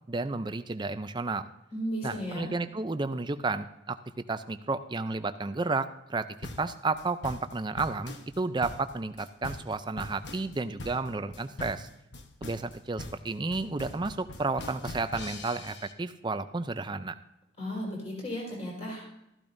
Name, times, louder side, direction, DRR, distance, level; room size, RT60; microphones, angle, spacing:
voice 1, 0.1-1.5 2.0-4.0 4.3-6.3 6.6-11.9 12.4-17.1, right 3 dB, 20° right, 11 dB, 0.4 m, -32 dB
voice 2, 1.7-2.5 17.6-19.0, equal, 30° left, -3 dB, 4.4 m, -35 dB
sound 1, 6.4-15.9, left 2 dB, 60° left, 1.0 m, -42 dB
13.5 x 12.0 x 2.6 m, 0.88 s
head